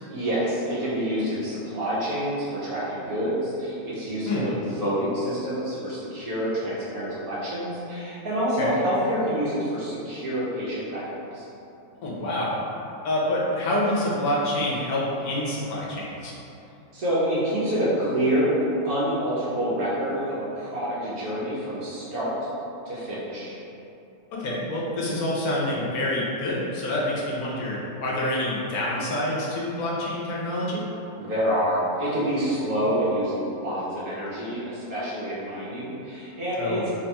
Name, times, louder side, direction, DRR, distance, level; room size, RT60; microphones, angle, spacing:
voice 1, 0.1-11.5 16.9-18.5 18.8-22.3 22.9-23.5 31.2-36.9, equal, 75° right, -9 dB, 1.3 m, -27 dB
voice 2, 12.0-12.5 13.0-16.3 24.3-30.9 36.6-36.8, left 1 dB, 80° left, -6 dB, 1.3 m, -27 dB
3.4 x 2.3 x 4.1 m, 2.8 s
omnidirectional pair, 1.6 m